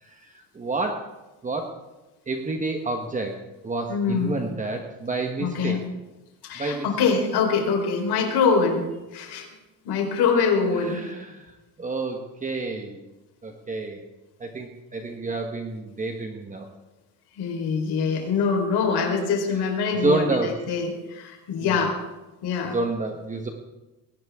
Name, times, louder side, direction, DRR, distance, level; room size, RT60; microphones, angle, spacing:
voice 1, 0.0-1.0 1.4-1.7 2.3-3.4 3.6-5.8 6.6-6.9 10.7-11.4 11.8-13.0 13.4-14.0 14.4-16.6 19.9-20.5 21.6-21.8 22.7-23.5, right 3 dB, 20° right, 3 dB, 1.2 m, -29 dB
voice 2, 3.9-4.4 5.4-5.8 6.4-8.8 9.1-9.5 9.8-11.0 17.4-22.0 22.4-22.7, left 5 dB, 75° left, 2 dB, 4.3 m, -24 dB
20.5 x 18.0 x 3.6 m, 1.1 s
cardioid pair, 160°, 39 cm